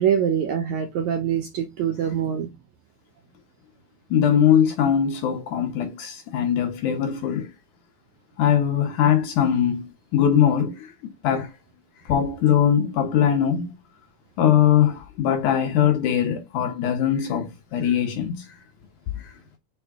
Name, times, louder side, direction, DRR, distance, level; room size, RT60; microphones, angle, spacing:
voice 1, 0.0-2.5, right 8 dB, 75° right, 1.7 m, -24 dB
voice 2, 4.1-7.5 8.4-11.5 12.1-13.7 14.4-18.5 19.2-19.3, left 9 dB, 75° left, 1.9 m, -21 dB
6.9 x 4.3 x 3.5 m
omnidirectional pair, 4.1 m